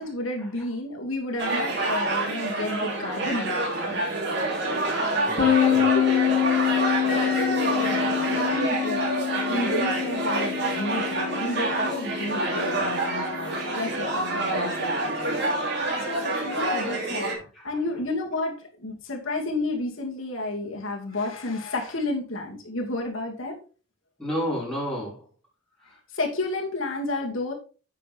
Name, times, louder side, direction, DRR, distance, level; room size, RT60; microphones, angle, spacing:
voice 1, 0.0-4.1 4.8-5.1 5.4-6.3 6.6-8.0 8.3-9.1 9.5-15.6 16.0-17.3 17.6-23.6 26.1-27.5, left 2 dB, 80° left, 0 dB, 2.5 m, -31 dB
sound 1, 1.4-17.3, right 2 dB, 55° right, 3.2 m, -27 dB
voice 2, 5.2-5.9 17.3-17.7 24.2-25.2, equal, 5° left, -6 dB, 5.4 m, -31 dB
sound 2, 5.4-14.8, left 10 dB, 45° left, 2.4 m, -27 dB
10.5 x 7.4 x 3.5 m, 0.35 s
head